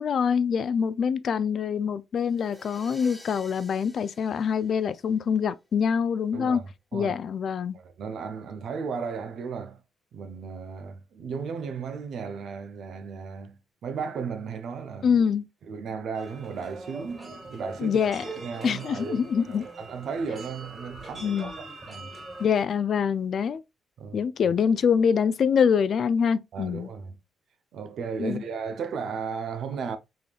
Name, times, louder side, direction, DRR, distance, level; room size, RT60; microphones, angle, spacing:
voice 1, 0.0-6.6 6.9-7.8 15.0-15.4 17.8-18.2 18.6-19.6 21.2-21.5 22.4-23.6 24.1-26.9 28.2-28.4, left 7 dB, 55° left, 0.3 m, -25 dB
sound 1, 2.2-5.4, left 1 dB, 10° left, 1.2 m, -51 dB
voice 2, 6.3-7.2 7.7-9.8 10.1-15.2 15.6-18.0 18.4-22.2 24.0-24.5 26.5-27.2 27.7-30.0, right 5 dB, 65° right, 0.6 m, -35 dB
sound 2, 16.1-22.5, right 2 dB, 35° right, 2.2 m, -42 dB
3.7 x 3.3 x 2.3 m
cardioid pair, 90°, 0 cm